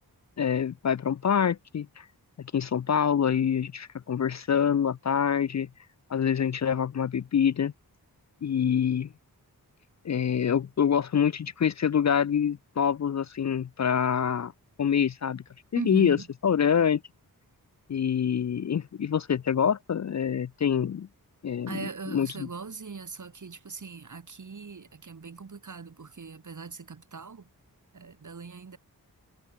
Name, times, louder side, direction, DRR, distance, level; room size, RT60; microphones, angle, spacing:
voice 1, 0.4-2.1 2.5-5.7 6.1-7.7 8.4-9.1 10.0-14.5 14.8-15.4 15.7-16.2 16.4-17.0 17.9-21.1 21.4-22.5, left 8 dB, 50° left, 0.5 m, -26 dB
voice 2, 15.7-16.3 21.7-27.5 27.9-28.8, right 5 dB, 55° right, 3.7 m, -40 dB
wide cardioid pair, 115°, 37 cm